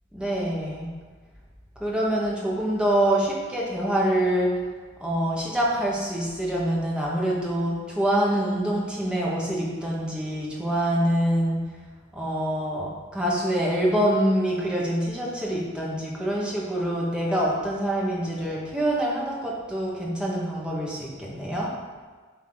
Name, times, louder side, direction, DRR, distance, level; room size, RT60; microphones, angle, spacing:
voice 1, 0.1-0.9 1.8-4.6 5.0-11.6 12.1-21.7, right 1 dB, 5° right, -5 dB, 1.0 m, -25 dB
7.4 x 3.7 x 3.8 m, 1.4 s
head